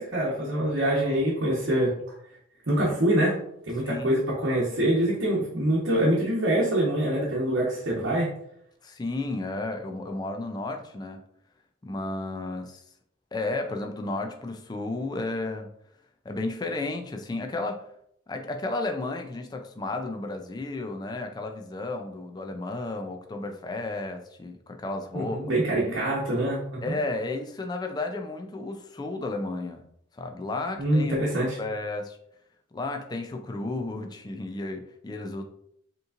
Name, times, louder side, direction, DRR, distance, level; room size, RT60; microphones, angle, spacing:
voice 1, 0.0-1.9 2.7-3.3 3.7-8.3 25.1-27.0 30.8-31.6, right 1 dB, 65° right, -5 dB, 1.0 m, -25 dB
voice 2, 3.8-4.1 8.8-11.2 11.8-12.8 13.3-15.7 16.2-17.8 18.3-25.4 25.8-26.0 26.8-29.8 30.1-32.2 32.7-35.4, left 2 dB, 20° left, 4 dB, 0.3 m, -33 dB
5.1 x 3.0 x 2.4 m, 0.70 s
head